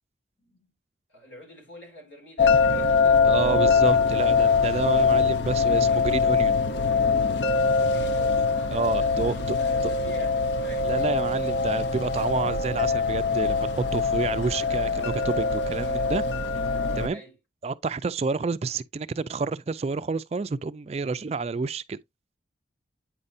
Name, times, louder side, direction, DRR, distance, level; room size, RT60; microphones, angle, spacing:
voice 1, 0.4-0.7 1.1-3.2 7.8-10.3 10.6-10.9 17.1-17.4, equal, 85° left, 3.9 m, -45 dB
sound 1, 2.4-17.1, left 5 dB, 70° left, 0.6 m, -23 dB
voice 2, 3.2-6.5 8.7-9.6 10.8-16.2 17.0-17.2 17.6-22.0, right 4 dB, 35° right, 0.3 m, -29 dB
8.8 x 5.4 x 2.5 m
head